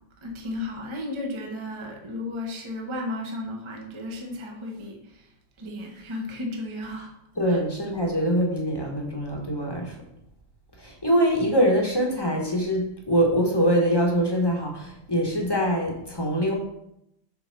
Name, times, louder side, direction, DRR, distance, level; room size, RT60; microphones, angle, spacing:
voice 1, 0.2-5.2 5.6-7.1 7.5-7.6, left 2 dB, 20° right, 0 dB, 0.8 m, -34 dB
voice 2, 7.4-10.0 10.8-16.5, equal, 15° left, 0 dB, 1.1 m, -23 dB
6.9 x 4.1 x 6.0 m, 0.79 s
omnidirectional pair, 2.2 m